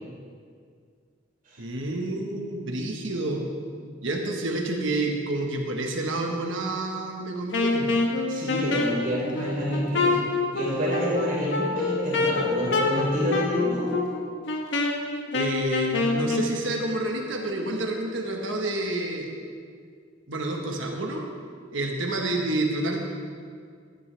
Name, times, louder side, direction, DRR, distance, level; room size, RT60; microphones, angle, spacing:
voice 1, 1.6-3.4 4.0-7.9 15.3-19.3 20.3-21.3 21.7-23.0, right 2 dB, 80° right, 1 dB, 1.4 m, -29 dB
Wind instrument woodwind instrument, 7.5-16.5, left 3 dB, 65° left, 1.2 m, -26 dB
voice 2, 8.3-10.2 10.5-14.0, equal, 45° right, -5 dB, 3.5 m, -28 dB
15.0 x 11.0 x 3.4 m, 2.1 s
head